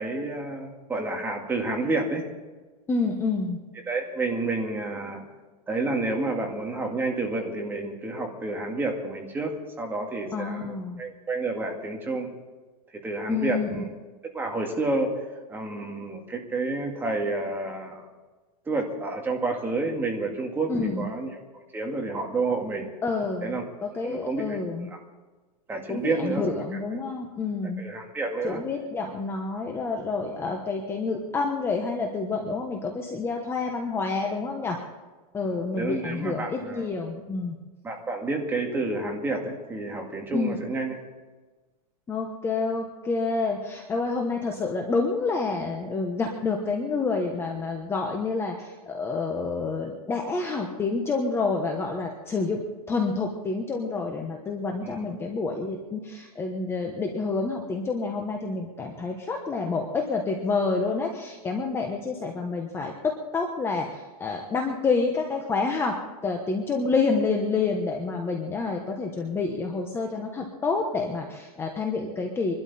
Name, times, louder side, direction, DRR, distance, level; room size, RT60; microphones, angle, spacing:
voice 1, 0.0-2.3 3.9-5.2 5.7-9.5 9.8-12.3 13.0-13.9 14.2-15.2 15.5-18.1 18.7-21.4 21.7-22.9 23.4-23.6 24.0-24.6 24.9-25.0 25.7-26.4 26.7-26.8 27.8-28.6 35.8-36.8 37.8-41.0 54.8-55.1, right 2 dB, 10° right, 1 dB, 2.0 m, -29 dB
voice 2, 2.9-3.6 10.3-11.0 13.2-13.8 20.7-21.0 23.0-24.9 25.9-27.9 28.4-34.8 35.3-37.6 40.3-40.6 42.1-52.6 52.9-72.5, left 4 dB, 10° left, 2 dB, 1.1 m, -28 dB
24.0 x 12.0 x 4.2 m, 1.3 s
supercardioid pair, 160°, 20 cm